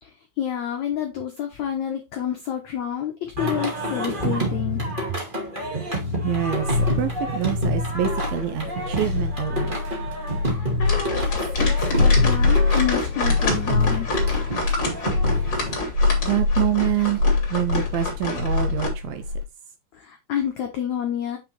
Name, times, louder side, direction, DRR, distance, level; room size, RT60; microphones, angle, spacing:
voice 1, 0.0-4.8 10.4-14.1 19.9-21.4, left 9 dB, 80° left, 1.6 m, -29 dB
Singing, 3.4-15.7, equal, 45° right, 0.6 m, -28 dB
voice 2, 5.9-10.1 16.2-17.2 17.5-19.2, right 13 dB, 80° right, 2.2 m, -26 dB
sound 1, 6.1-19.4, left 3 dB, 65° right, 3.5 m, -24 dB
sound 2, 10.8-18.9, left 3 dB, 30° left, 2.6 m, -29 dB
7.3 x 5.9 x 3.2 m
omnidirectional pair, 4.7 m